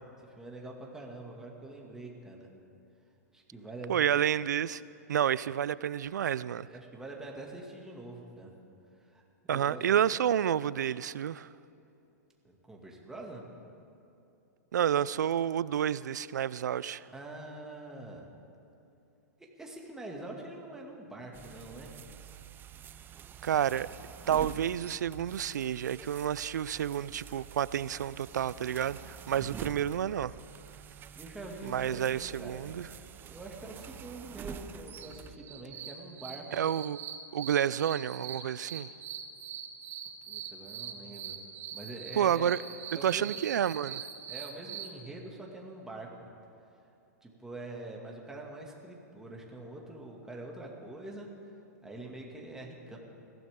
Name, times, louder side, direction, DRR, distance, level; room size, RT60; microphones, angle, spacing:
voice 1, 0.2-2.5 3.3-4.3 6.7-8.5 9.0-9.2 9.5-10.1 12.4-13.4 17.1-18.3 19.6-21.9 29.3-29.5 31.2-36.5 40.3-41.4 41.7-42.6 42.9-43.4 44.3-46.1 47.2-51.3 51.8-53.0, right 2 dB, 5° right, 2.2 m, -45 dB
voice 2, 3.9-4.8 5.1-6.7 9.5-11.5 14.7-17.0 23.4-23.9 24.3-30.3 31.6-32.9 36.5-37.0 37.3-38.9 42.2-42.6 43.0-44.0, right 9 dB, 85° right, 0.4 m, -29 dB
sound 1, 21.3-35.4, right 8 dB, 20° right, 0.5 m, -47 dB
sound 2, 35.0-44.9, right 8 dB, 60° right, 1.6 m, -43 dB
21.0 x 16.0 x 3.7 m
hypercardioid pair, 125°, 9 cm